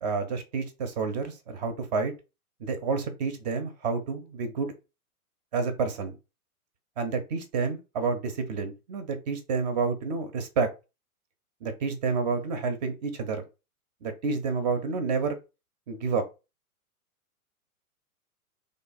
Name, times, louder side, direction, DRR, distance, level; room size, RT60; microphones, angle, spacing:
voice 1, 0.0-2.1 2.6-4.7 5.5-6.2 7.0-10.7 11.6-13.5 14.0-15.4 15.9-16.3, right 4 dB, 30° right, 9 dB, 0.5 m, -29 dB
3.2 x 2.3 x 3.9 m, 0.29 s
figure-of-eight pair, 110°, 45 cm